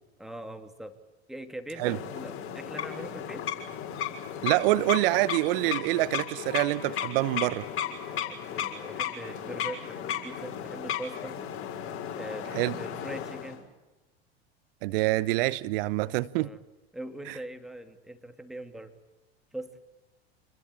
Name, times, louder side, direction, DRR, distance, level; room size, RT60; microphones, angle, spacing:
voice 1, 0.2-1.0 1.3-3.4 8.1-11.4 12.1-13.6 16.3-16.6 16.9-18.9 19.5-19.8, right 1 dB, ahead, 2.6 m, -42 dB
sound 1, 1.8-13.6, left 9 dB, 45° left, 6.5 m, -35 dB
voice 2, 4.4-7.7 12.5-12.7 14.8-16.5 17.3-17.4, right 18 dB, 60° right, 1.0 m, -26 dB
28.0 x 21.5 x 8.6 m
hypercardioid pair, 85°, 32 cm